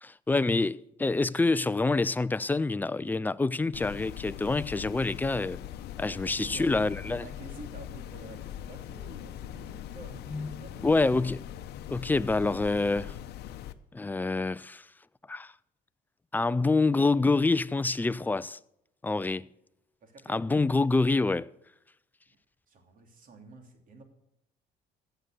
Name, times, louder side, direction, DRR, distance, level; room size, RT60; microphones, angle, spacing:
voice 1, 0.0-5.6 6.0-7.3 10.3-10.5 10.8-11.4 11.9-13.1 13.9-14.9 15.3-15.5 16.3-18.6 19.0-19.5 20.3-21.5, left 3 dB, 10° left, 0.4 m, -26 dB
sound 1, 3.7-13.7, left 11 dB, 75° left, 0.7 m, -41 dB
voice 2, 6.2-11.1 11.4-11.6 12.1-12.4 12.7-13.1 19.2-19.3 20.0-20.4 22.3-22.4 22.7-24.0, right 3 dB, 55° right, 3.0 m, -49 dB
15.0 x 7.9 x 6.8 m
cardioid pair, 110°, 17 cm